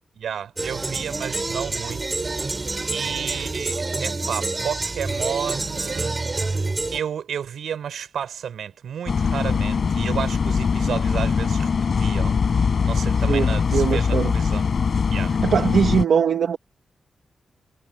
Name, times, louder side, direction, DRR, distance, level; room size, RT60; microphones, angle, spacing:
voice 1, 0.2-2.7 2.9-11.7 12.0-12.4 12.8-14.7 15.1-15.4, right 8 dB, 85° right, 7.1 m, -32 dB
sound 1, 0.6-7.0, right 3 dB, 20° right, 7.5 m, -27 dB
sound 2, 9.1-16.0, left 5 dB, 45° left, 7.5 m, -22 dB
voice 2, 13.3-14.3 15.4-16.6, right 7 dB, 60° right, 1.7 m, -21 dB
wide cardioid pair, 180°, 0 cm